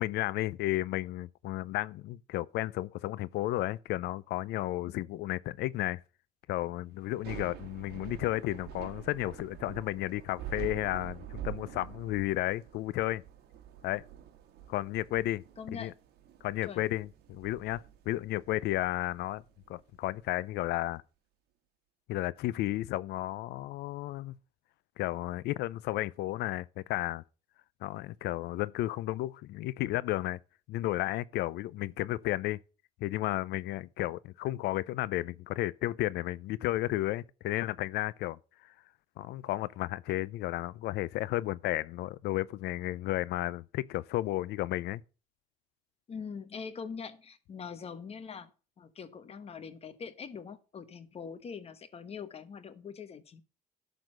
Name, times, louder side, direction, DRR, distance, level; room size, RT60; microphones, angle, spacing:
voice 1, 0.0-6.0 6.5-13.2 13.8-14.0 14.7-15.4 15.7-15.9 16.4-19.4 19.7-21.0 22.1-24.4 25.0-27.2 27.8-30.4 30.7-32.6 33.0-38.4 39.2-45.0, left 16 dB, 80° left, 0.5 m, -33 dB
voice 2, 4.9-5.2 15.6-15.9 16.7-16.9 46.1-48.5 48.8-53.4, left 6 dB, 35° left, 1.1 m, -43 dB
Thunder / Rain, 7.1-20.2, right 10 dB, 75° right, 1.4 m, -46 dB
12.0 x 4.0 x 6.3 m
cardioid pair, 110°, 17 cm